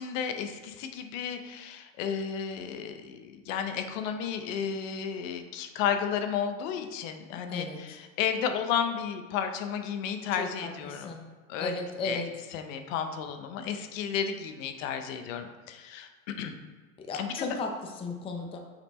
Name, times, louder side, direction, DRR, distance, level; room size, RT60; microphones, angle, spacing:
voice 1, 0.0-11.1 11.5-11.8 12.0-12.2 12.5-16.1 16.4-16.5 17.1-17.5, left 7 dB, 60° left, 7 dB, 0.8 m, -33 dB
voice 2, 7.5-8.0 10.4-11.3 11.6-12.2 17.0-18.6, left 3 dB, 15° left, 2 dB, 0.5 m, -36 dB
5.8 x 4.2 x 4.2 m, 1.4 s
supercardioid pair, 115°, 44 cm